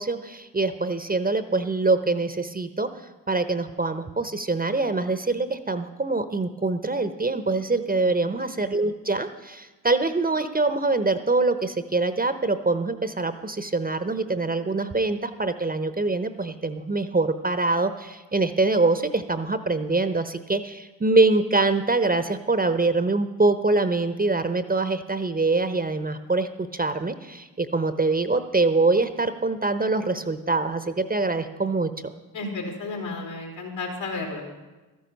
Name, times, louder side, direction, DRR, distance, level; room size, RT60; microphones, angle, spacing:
voice 1, 0.0-2.9 3.3-31.9, right 3 dB, 20° right, 10 dB, 0.9 m, -24 dB
voice 2, 32.3-34.5, left 3 dB, 75° left, 1 dB, 3.6 m, -33 dB
13.0 x 10.5 x 5.4 m, 1.2 s
supercardioid pair, 55°, 45 cm